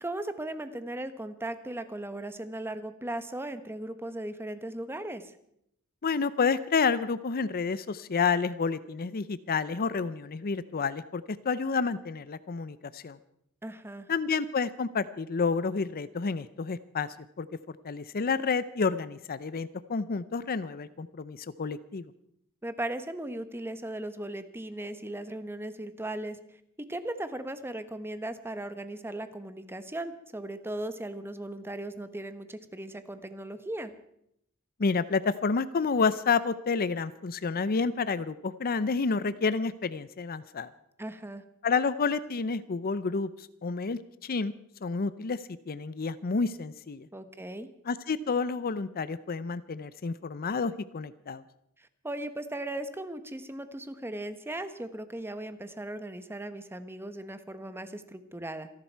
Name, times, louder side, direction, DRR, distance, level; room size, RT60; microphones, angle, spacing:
voice 1, 0.0-5.3 13.6-14.1 22.6-33.9 41.0-41.4 47.1-47.7 51.8-58.7, right 1 dB, 10° right, 11 dB, 1.0 m, -37 dB
voice 2, 6.0-13.2 14.1-17.1 17.4-22.1 34.8-40.7 41.6-44.5 44.8-47.1 47.9-51.4, left 5 dB, 45° left, 15 dB, 0.6 m, -29 dB
27.0 x 11.5 x 4.6 m, 0.74 s
head